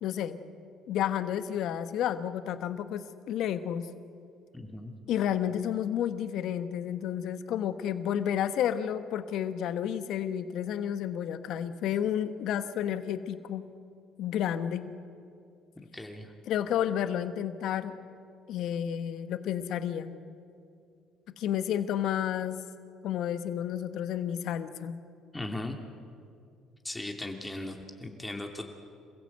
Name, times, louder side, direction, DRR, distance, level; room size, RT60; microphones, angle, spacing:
voice 1, 0.0-0.4 0.9-3.9 5.1-13.7 14.2-14.8 16.5-17.9 18.5-20.2 21.4-22.6 23.0-25.0, left 10 dB, 70° left, 11 dB, 1.3 m, -31 dB
voice 2, 4.5-4.9 15.8-16.3 25.3-25.8 26.8-28.7, left 2 dB, 15° left, 3 dB, 2.8 m, -38 dB
28.0 x 15.5 x 8.0 m, 2.4 s
supercardioid pair, 65°, 0 cm